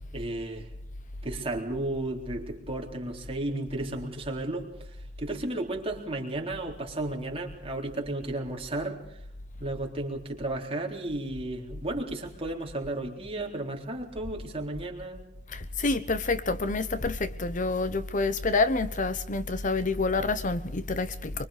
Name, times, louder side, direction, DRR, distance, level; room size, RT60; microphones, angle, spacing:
voice 1, 0.1-0.7 1.2-4.7 5.2-9.0 9.6-15.2, right 2 dB, 30° right, 3.8 m, -33 dB
voice 2, 15.5-21.3, left 3 dB, 45° left, 1.0 m, -28 dB
24.5 x 23.5 x 5.1 m
head